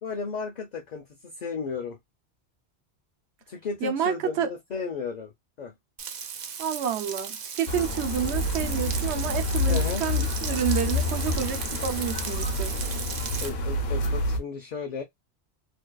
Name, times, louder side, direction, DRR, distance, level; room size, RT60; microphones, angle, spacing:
voice 1, 0.0-2.0 3.5-5.3 5.6-5.7 9.7-10.0 13.4-15.0, left 5 dB, 55° left, 0.6 m, -34 dB
voice 2, 3.8-4.5 6.6-12.8, right 9 dB, 85° right, 0.9 m, -29 dB
Frying (food), 6.0-13.5, right 6 dB, 55° right, 0.5 m, -36 dB
sound 1, 7.7-14.4, left 2 dB, 70° left, 0.9 m, -28 dB
2.6 x 2.2 x 2.2 m
omnidirectional pair, 1.1 m